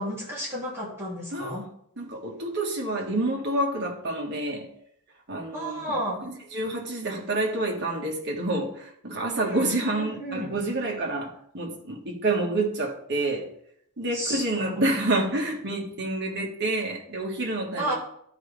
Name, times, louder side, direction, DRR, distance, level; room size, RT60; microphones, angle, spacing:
voice 1, 0.0-1.7 5.5-6.3 9.3-10.6 14.1-14.8 17.8-18.0, equal, 10° right, 2.9 m, -32 dB
voice 2, 2.0-4.7 5.3-5.9 6.3-13.5 14.0-17.9, right 2 dB, 50° right, 1.6 m, -28 dB
12.0 x 5.1 x 3.4 m
head